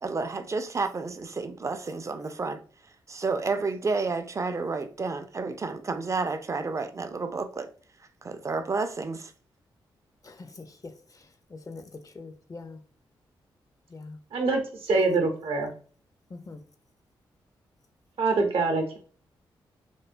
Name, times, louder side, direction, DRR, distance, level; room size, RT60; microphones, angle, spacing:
voice 1, 0.0-2.6 3.1-7.7 8.2-9.3, right 4 dB, 30° right, 0.4 m, -30 dB
voice 2, 10.2-11.2 11.5-12.8 13.9-14.2 16.3-16.6, left 3 dB, 35° left, 0.4 m, -43 dB
voice 3, 14.3-15.7 18.2-19.0, right 3 dB, 70° right, 0.6 m, -25 dB
2.6 x 2.2 x 2.5 m
supercardioid pair, 45°, 10 cm